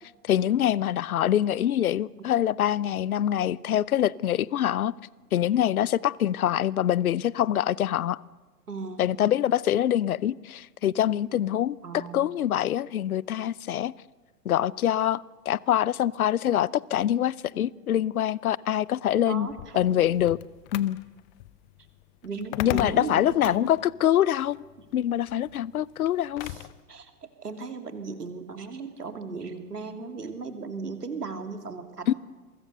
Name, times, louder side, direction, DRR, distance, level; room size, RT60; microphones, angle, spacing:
voice 1, 0.2-4.9 5.3-8.2 9.0-13.9 14.4-19.5 19.7-20.4 20.7-21.0 22.6-24.6 24.9-26.5 32.1-32.2, left 11 dB, 65° left, 24 dB, 0.7 m, -25 dB
voice 2, 8.7-9.0 11.8-12.3 19.3-20.0 22.2-23.6 26.4-27.1 27.4-32.1, right 4 dB, 75° right, 7 dB, 2.8 m, -36 dB
sound 1, 19.5-26.8, left 16 dB, 30° left, 0.7 m, -40 dB
27.0 x 23.5 x 6.8 m, 1.3 s
figure-of-eight pair, 100°, 47 cm